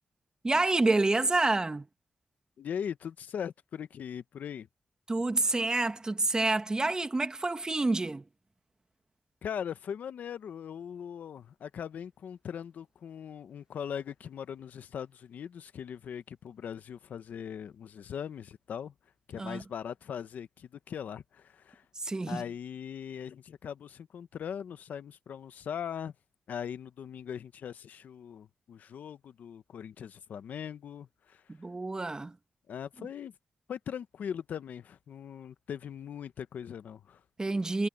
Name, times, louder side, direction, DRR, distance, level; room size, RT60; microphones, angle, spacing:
voice 1, 0.4-1.9 5.1-8.2 19.4-19.6 21.9-22.4 31.5-32.3 37.4-37.9, right 2 dB, 25° right, 1.4 m, -28 dB
voice 2, 2.6-4.7 9.4-18.9 19.3-21.8 22.3-26.1 26.5-31.4 32.7-33.3 33.7-37.2, left 8 dB, 85° left, 0.8 m, -40 dB
cardioid pair, 75°, 3 cm